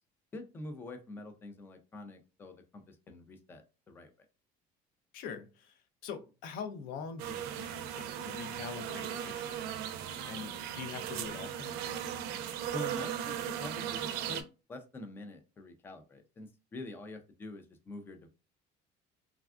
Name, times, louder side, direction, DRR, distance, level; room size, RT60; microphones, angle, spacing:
voice 1, 0.3-4.1 12.7-14.4 14.7-18.3, left 2 dB, 15° left, 0.3 m, -46 dB
voice 2, 5.1-11.8, left 6 dB, 65° left, 0.5 m, -44 dB
sound 1, 7.2-14.4, right 9 dB, 75° right, 0.4 m, -37 dB
3.4 x 2.3 x 2.3 m
cardioid pair, 175°, 16 cm